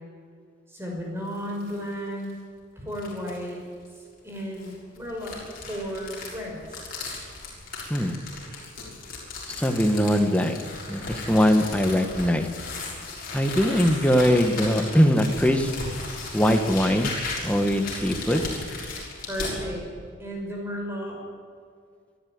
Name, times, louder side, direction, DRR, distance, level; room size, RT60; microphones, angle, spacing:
voice 1, 0.7-2.3 2.8-3.6 4.0-5.4 5.7-6.9 19.3-19.8 20.2-21.2, equal, 10° right, -1 dB, 5.9 m, -34 dB
sound 1, 1.2-1.8 2.2-2.3 2.9-3.5 4.3-19.6, left 3 dB, 45° left, 6.5 m, -36 dB
voice 2, 9.5-10.6 10.9-12.5 13.3-15.7 16.3-17.1 17.4-18.4, equal, 5° left, 5 dB, 1.4 m, -21 dB
24.5 x 13.0 x 9.6 m, 2.2 s
head